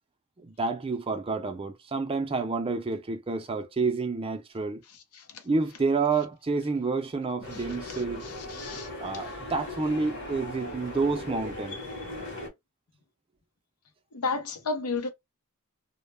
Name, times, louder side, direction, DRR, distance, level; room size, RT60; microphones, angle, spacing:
voice 1, 0.4-4.8 5.4-8.2 9.0-11.8, right 4 dB, 25° right, 0.4 m, -29 dB
sound 1, 7.4-12.5, left 2 dB, 50° left, 1.0 m, -38 dB
voice 2, 8.2-8.9 14.1-15.1, left 4 dB, 90° left, 0.7 m, -32 dB
2.2 x 2.1 x 3.2 m
head